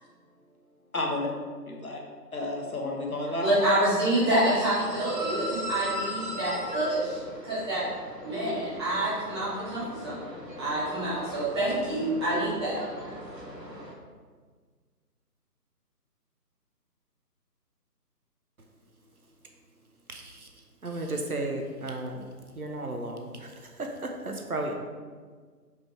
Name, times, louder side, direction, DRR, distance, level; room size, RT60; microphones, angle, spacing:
voice 1, 0.9-1.3 1.7-2.0 2.3-3.6 4.2-4.4, left 2 dB, 60° left, 0 dB, 1.4 m, -31 dB
voice 2, 3.4-7.8 8.2-12.7, right 1 dB, 15° right, -10 dB, 1.7 m, -27 dB
sound 1, 4.3-13.9, left 1 dB, 90° right, 1.5 m, -39 dB
voice 3, 20.1-20.5 20.8-22.3 22.5-24.7, right 2 dB, 65° right, 3 dB, 1.0 m, -34 dB
5.2 x 5.2 x 4.5 m, 1.5 s
figure-of-eight pair, 150°, 48 cm